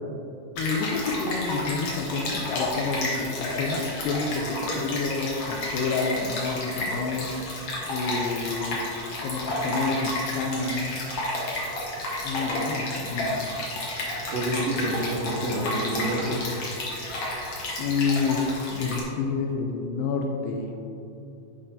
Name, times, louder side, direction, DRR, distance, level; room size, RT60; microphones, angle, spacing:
voice 1, 0.6-7.4 7.9-8.8 9.2-10.9 12.2-13.4 17.8-20.8, left 4 dB, 85° left, 2 dB, 2.0 m, -29 dB
Stream, 0.6-19.0, left 1 dB, 65° left, 1.6 m, -31 dB
voice 2, 14.3-16.4, right 1 dB, 85° right, -6 dB, 1.4 m, -28 dB
8.1 x 5.2 x 2.8 m, 2.8 s
omnidirectional pair, 4.3 m